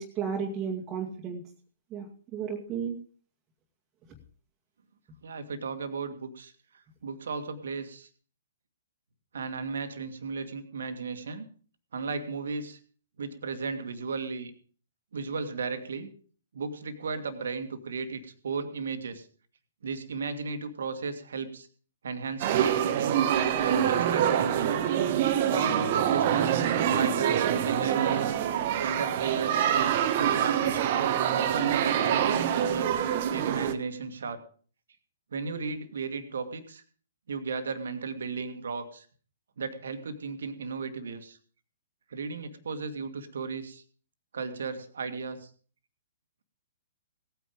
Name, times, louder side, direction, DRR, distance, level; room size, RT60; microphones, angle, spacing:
voice 1, 0.0-1.4 1.9-2.1 2.3-3.0, right 6 dB, 20° right, 1 dB, 2.0 m, -33 dB
voice 2, 5.2-6.5 7.0-8.1 9.3-11.5 11.9-12.8 13.2-14.5 15.1-16.1 16.5-19.3 19.8-21.7 22.0-23.2 23.6-24.8 25.5-28.2 28.8-29.7 30.1-30.9 31.3-32.9 33.3-34.4 35.3-36.8 37.3-39.1 39.6-41.4 42.1-43.8 44.3-45.5, right 4 dB, 65° right, 9 dB, 1.9 m, -35 dB
sound 1, 22.4-33.7, right 9 dB, 45° right, 1.3 m, -25 dB
17.5 x 9.4 x 5.1 m, 0.44 s
figure-of-eight pair, 120°, 0 cm